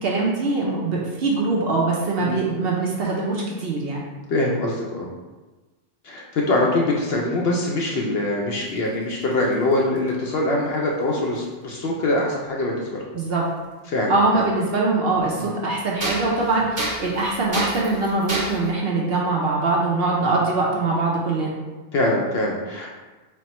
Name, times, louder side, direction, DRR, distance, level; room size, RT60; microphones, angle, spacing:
voice 1, 0.0-4.0 13.1-13.4 14.1-21.5, right 3 dB, 60° right, -3 dB, 0.7 m, -22 dB
voice 2, 4.3-5.1 6.0-13.0 13.9-14.4 15.4-15.5 20.2-20.3 21.9-22.9, left 2 dB, 65° left, -2 dB, 0.7 m, -23 dB
sound 1, 8.7-10.1 11.4-11.5 13.6-13.7 14.4-14.5 16.0-18.7, right 1 dB, 15° right, 0.8 m, -30 dB
4.3 x 2.1 x 4.1 m, 1.2 s
omnidirectional pair, 1.4 m